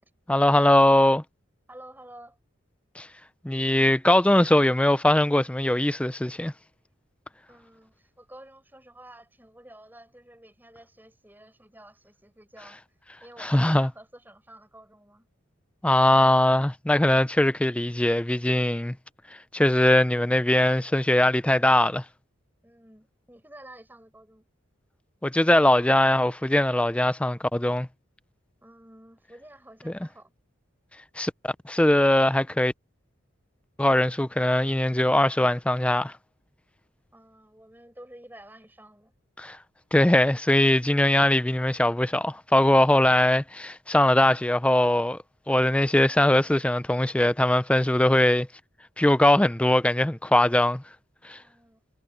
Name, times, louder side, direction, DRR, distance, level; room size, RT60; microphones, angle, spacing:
voice 1, 0.3-1.2 3.0-3.1 3.4-6.5 13.4-13.9 15.8-19.0 19.5-22.0 25.2-27.9 29.9-30.0 31.2-32.7 33.8-36.1 39.4-39.6 39.9-45.2 45.5-48.5 49.0-50.8 51.2-51.4, left 1 dB, 5° left, 0.4 m, -21 dB
voice 2, 1.7-2.4 7.5-12.8 13.2-15.3 22.6-24.5 28.6-30.3 37.1-39.1 51.4-51.8, right 1 dB, 10° right, 5.6 m, -50 dB
head